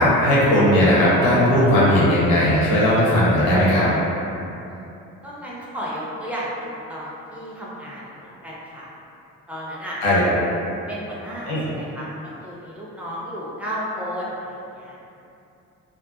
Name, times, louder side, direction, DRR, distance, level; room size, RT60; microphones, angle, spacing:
voice 1, 0.0-3.9 10.0-10.4 11.5-11.6, left 1 dB, 75° left, -7 dB, 0.7 m, -17 dB
voice 2, 4.7-8.9 9.5-10.2 10.9-15.0, equal, 5° right, -7 dB, 0.5 m, -33 dB
2.6 x 2.0 x 2.5 m, 2.7 s
figure-of-eight pair, 45°, 40 cm